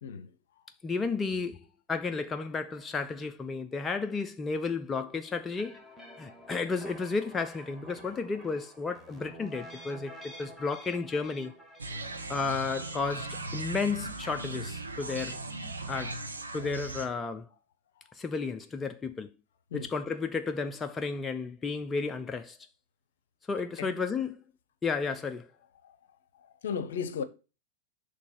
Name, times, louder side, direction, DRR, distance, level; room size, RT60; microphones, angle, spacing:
voice 1, 0.0-0.6 6.2-6.3 19.7-19.9 23.8-23.9 25.8-26.0 26.3-27.2, left 6 dB, 60° left, 0.6 m, -36 dB
voice 2, 0.8-5.8 6.2-11.5 12.3-15.4 15.9-16.2 16.5-17.5 18.1-19.3 19.7-22.6 23.5-24.4 24.8-25.5, left 4 dB, 15° left, 0.4 m, -33 dB
sound 1, 5.6-12.6, equal, 5° right, 1.2 m, -49 dB
sound 2, 11.8-17.1, right 2 dB, 75° right, 0.8 m, -38 dB
5.9 x 3.3 x 5.5 m
figure-of-eight pair, 90°, 0 cm